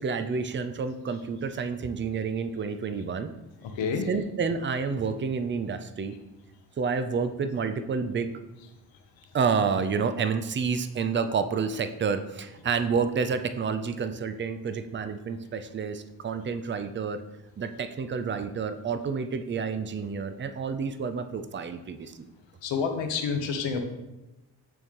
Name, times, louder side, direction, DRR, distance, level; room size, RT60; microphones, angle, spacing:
voice 1, 0.0-3.3 4.1-6.1 6.8-8.3 9.3-17.2 17.6-22.1, right 5 dB, 25° right, 10 dB, 0.5 m, -29 dB
voice 2, 3.6-4.1 22.6-23.8, left 5 dB, 70° left, 4 dB, 1.0 m, -28 dB
9.1 x 3.4 x 3.1 m, 1.0 s
hypercardioid pair, 45°, 46 cm